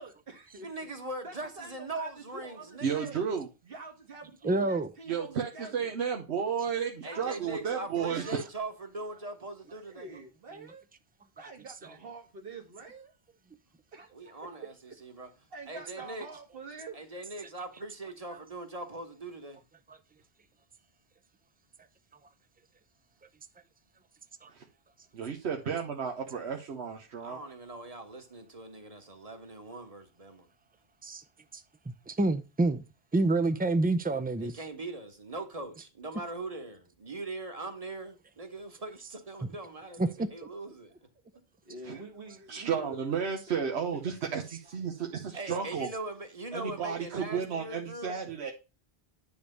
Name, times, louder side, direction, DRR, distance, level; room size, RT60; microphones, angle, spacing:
voice 1, 0.0-0.7 1.2-3.2 3.6-5.9 7.0-8.5 9.8-10.9 11.4-13.1 13.9-14.1 14.6-15.0 15.5-17.0 41.7-43.2 43.5-43.8 46.8-46.9, right 3 dB, 60° right, 1.8 m, -46 dB
voice 2, 0.6-3.1 7.0-10.1 14.1-15.3 15.7-16.3 16.9-19.6 27.2-30.5 34.4-40.9 45.3-48.2, right 2 dB, 35° right, 1.4 m, -41 dB
voice 3, 2.8-3.5 5.1-8.4 25.1-27.4 41.9-42.0 42.5-45.9 46.5-48.5, right 7 dB, 85° right, 1.2 m, -33 dB
voice 4, 4.4-4.9 19.9-20.0 24.4-24.5 31.0-31.2 32.1-32.8 33.1-34.5 40.0-40.5, right 2 dB, 10° right, 0.4 m, -27 dB
10.0 x 3.4 x 6.5 m
omnidirectional pair, 1.1 m